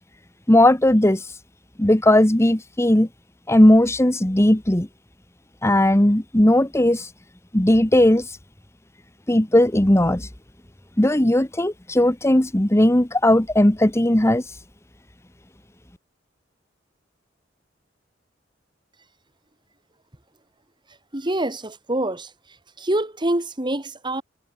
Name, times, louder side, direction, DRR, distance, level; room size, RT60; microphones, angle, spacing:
voice 1, 0.5-1.2 1.8-3.1 3.5-4.9 5.6-7.1 7.5-8.3 9.3-10.3 11.0-14.4, left 1 dB, 15° left, 1.2 m, -17 dB
voice 2, 21.1-22.3 22.8-24.2, right 1 dB, 25° right, 2.6 m, -25 dB
head